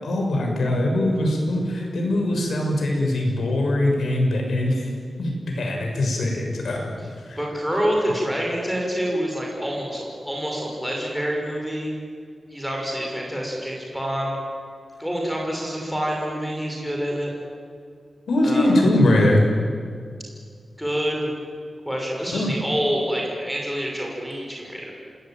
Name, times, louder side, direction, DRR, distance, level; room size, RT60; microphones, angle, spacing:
voice 1, 0.0-4.9 5.2-6.9 7.3-7.4 18.3-19.4 22.3-22.5, left 1 dB, 85° left, 1 dB, 6.9 m, -21 dB
voice 2, 7.4-11.9 12.5-14.4 15.0-17.3 18.4-18.8 20.8-21.2 21.9-24.9, equal, ahead, -2 dB, 6.0 m, -27 dB
27.5 x 19.0 x 9.3 m, 2.1 s
wide cardioid pair, 175°, 0 cm